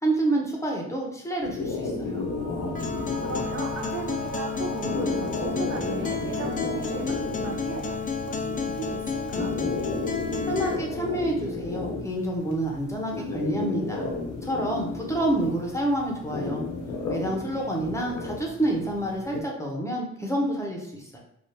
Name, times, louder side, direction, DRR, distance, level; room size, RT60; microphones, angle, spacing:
voice 1, 0.0-2.2 10.5-14.1 14.4-16.6 17.1-21.2, right 1 dB, 10° left, -1 dB, 0.7 m, -28 dB
sound 1, 1.4-19.4, left 3 dB, 75° left, 0.7 m, -33 dB
sound 2, 2.0-12.9, right 2 dB, 85° right, 0.7 m, -40 dB
Acoustic guitar, 2.8-10.8, left 6 dB, 30° left, 0.4 m, -32 dB
voice 2, 3.3-8.0 8.2-9.5 17.5-17.7, right 4 dB, 50° right, 0 dB, 0.7 m, -36 dB
3.3 x 2.4 x 2.7 m, 0.75 s
cardioid pair, 90°, 30 cm